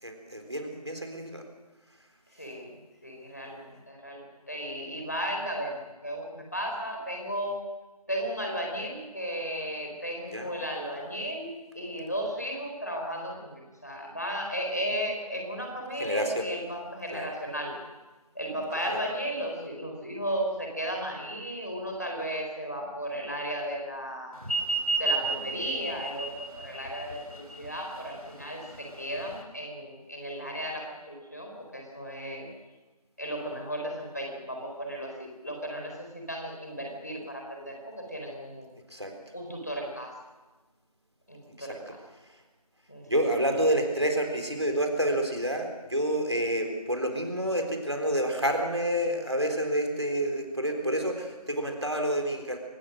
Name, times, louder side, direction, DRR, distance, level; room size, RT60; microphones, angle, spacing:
voice 1, 0.0-1.4 10.3-10.5 16.0-16.5 17.1-17.3 18.7-19.0 38.9-39.1 41.6-41.8 43.1-52.6, right 1 dB, 45° right, 5 dB, 3.8 m, -29 dB
voice 2, 2.4-2.7 3.0-7.6 8.1-17.7 18.3-24.3 25.0-32.5 33.2-38.7 39.3-40.1 41.3-42.0 42.9-43.3, equal, 25° left, 1 dB, 4.2 m, -35 dB
sound 1, 24.4-29.4, right 3 dB, 70° right, 4.9 m, -32 dB
25.5 x 18.5 x 6.5 m, 1.2 s
figure-of-eight pair, 180°, 20 cm